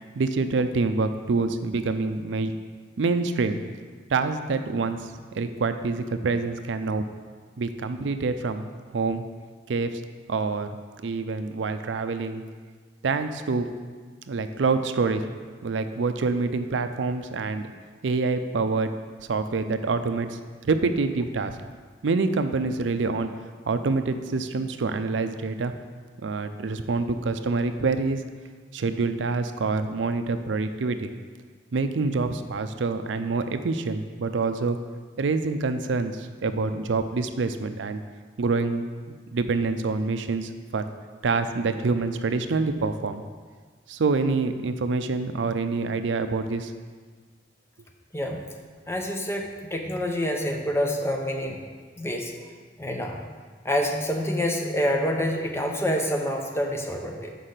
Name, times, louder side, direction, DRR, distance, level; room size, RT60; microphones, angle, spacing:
voice 1, 0.2-2.5 3.0-3.6 4.1-7.0 7.6-8.7 8.9-9.2 9.7-10.0 10.3-10.7 11.0-12.4 13.0-13.7 14.3-15.2 15.6-17.7 18.0-18.9 19.3-20.4 20.6-21.6 22.0-23.3 23.7-25.7 26.2-28.2 28.7-31.1 31.7-34.8 35.2-38.0 38.4-40.8 41.2-43.2 43.9-46.7, right 4 dB, 80° right, 9 dB, 0.5 m, -26 dB
voice 2, 48.1-48.4 48.9-51.6 52.0-52.3 52.8-53.2 53.6-57.3, equal, 15° left, 2 dB, 0.8 m, -27 dB
5.7 x 5.3 x 6.6 m, 1.5 s
head